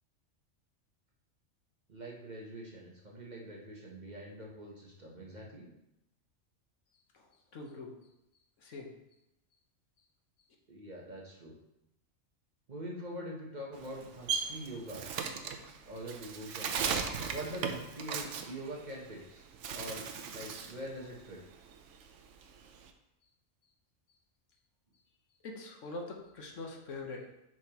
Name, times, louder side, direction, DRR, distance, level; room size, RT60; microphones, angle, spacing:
voice 1, 1.9-5.7 10.7-11.6 12.7-15.0 15.9-16.7 17.3-19.4 19.7-21.4, right 1 dB, 40° right, -2 dB, 1.0 m, -44 dB
voice 2, 7.5-7.9 8.6-8.9 25.4-27.3, left 3 dB, 70° left, 1 dB, 1.3 m, -43 dB
Bird, 13.7-19.2 19.5-20.8 21.2-22.9, right 6 dB, 70° right, 0.9 m, -37 dB
7.5 x 5.3 x 2.9 m, 0.86 s
omnidirectional pair, 1.3 m